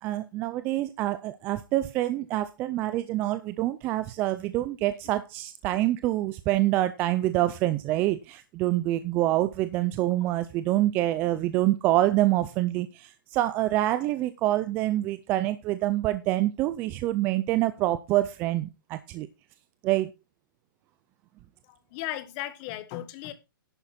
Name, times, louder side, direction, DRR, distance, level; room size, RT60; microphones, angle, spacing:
voice 1, 0.0-19.3 19.8-20.1, right 15 dB, 15° right, 0.4 m, -26 dB
voice 2, 21.6-23.3, left 14 dB, 25° left, 1.3 m, -36 dB
11.0 x 8.1 x 4.2 m
hypercardioid pair, 165°, 11 cm